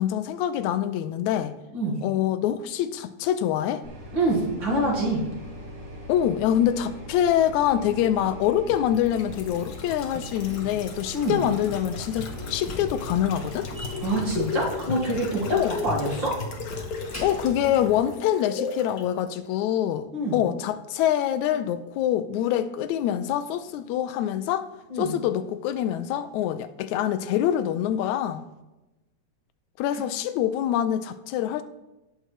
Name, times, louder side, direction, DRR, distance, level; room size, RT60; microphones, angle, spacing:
voice 1, 0.0-1.5 2.0-3.8 6.1-13.7 15.5-15.7 17.2-24.7 25.0-28.4 29.8-31.6, left 10 dB, 80° left, 12 dB, 1.9 m, -25 dB
sound 1, 3.8-14.4, equal, 85° right, 4.3 m, -41 dB
voice 2, 4.1-5.2 11.1-11.4 14.0-16.4 20.1-20.4 24.9-25.1 29.9-30.0, right 1 dB, 45° right, -3 dB, 2.3 m, -26 dB
sound 2, 8.7-19.0 19.3-19.4, left 4 dB, 55° left, 1.6 m, -36 dB
Slam, 11.9-18.1, left 3 dB, 10° left, 0.8 m, -41 dB
18.0 x 6.5 x 3.2 m, 1.0 s
omnidirectional pair, 3.3 m